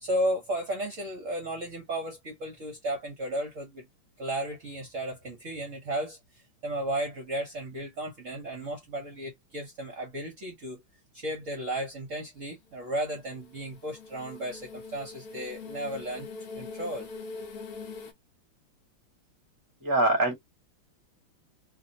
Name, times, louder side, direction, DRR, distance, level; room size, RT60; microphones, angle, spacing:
voice 1, 0.0-3.9 4.2-10.8 11.1-16.3 16.5-17.1, right 1 dB, 50° right, 1.0 m, -34 dB
sound 1, 12.6-18.1, left 4 dB, 60° left, 1.1 m, -43 dB
voice 2, 19.8-20.3, right 2 dB, 15° right, 0.9 m, -23 dB
2.8 x 2.7 x 2.7 m
omnidirectional pair, 2.1 m